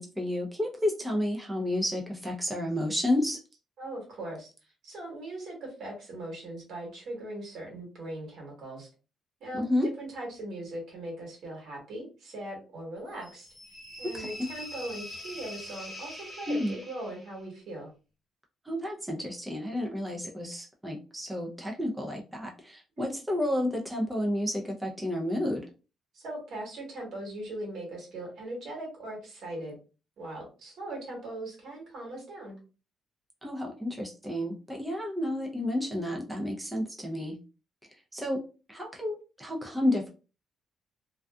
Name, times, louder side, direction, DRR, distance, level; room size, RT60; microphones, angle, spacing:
voice 1, 0.0-3.4 9.5-9.9 14.0-14.5 16.5-16.8 18.6-25.6 33.4-37.4 37.9-38.4 38.7-40.1, left 1 dB, 10° right, 0 dB, 0.6 m, -31 dB
voice 2, 3.8-4.5 4.8-8.9 9.4-13.5 14.0-17.9 23.0-23.1 26.1-29.8 30.2-32.6, right 1 dB, 70° right, -1 dB, 1.4 m, -40 dB
sound 1, 13.2-17.4, left 1 dB, 10° left, 1.4 m, -43 dB
2.5 x 2.3 x 2.3 m, 0.33 s
cardioid pair, 90°, 0 cm